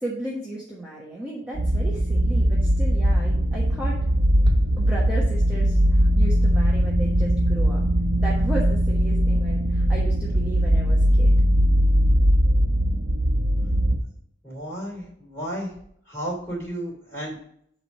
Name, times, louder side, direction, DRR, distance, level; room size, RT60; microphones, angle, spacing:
voice 1, 0.0-4.0 4.8-7.8 8.2-11.3, right 1 dB, 5° right, -5 dB, 1.1 m, -35 dB
sound 1, 1.5-14.0, equal, 60° right, 1.0 m, -20 dB
sound 2, 4.5-6.1, right 1 dB, 25° right, 0.5 m, -36 dB
voice 2, 14.4-15.7 16.1-17.4, right 1 dB, 15° left, -4 dB, 3.2 m, -33 dB
8.3 x 3.3 x 6.5 m, 0.68 s
head